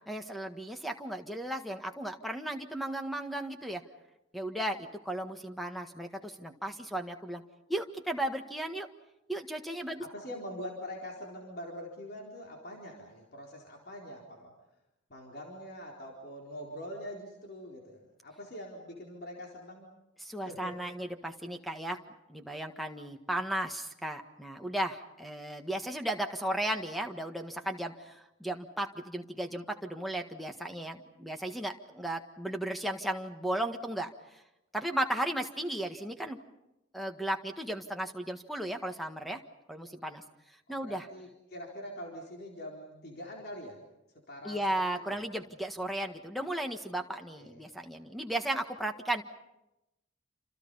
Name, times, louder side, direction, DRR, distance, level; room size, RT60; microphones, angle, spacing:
voice 1, 0.1-3.8 4.3-7.4 7.7-8.9 9.3-10.0 20.2-22.0 22.3-34.4 34.7-36.4 36.9-39.4 39.7-40.2 40.7-41.1 44.4-49.2, right 1 dB, ahead, 5 dB, 1.5 m, -35 dB
voice 2, 10.0-14.5 15.1-19.9 20.4-20.8 40.7-43.8 44.3-44.6 45.1-45.2 47.4-47.6, equal, 50° left, -1 dB, 4.2 m, -44 dB
29.0 x 27.0 x 5.6 m, 0.91 s
head